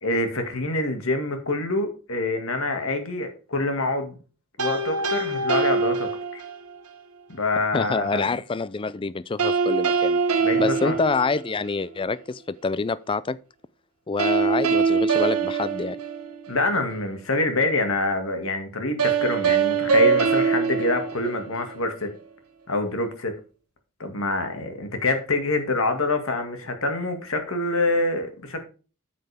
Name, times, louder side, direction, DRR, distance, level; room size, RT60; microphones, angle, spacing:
voice 1, 0.0-4.2 4.6-6.4 7.3-8.3 10.4-10.9 16.5-22.1 22.7-23.3 24.0-28.6, left 2 dB, 65° left, 2.0 m, -26 dB
sound 1, 4.6-6.8 9.4-11.8 14.2-16.7 19.0-21.8, right 5 dB, 85° right, 1.4 m, -23 dB
voice 2, 7.7-10.2 10.6-13.4 14.1-16.0, left 4 dB, 25° left, 0.4 m, -26 dB
9.4 x 7.7 x 3.4 m
head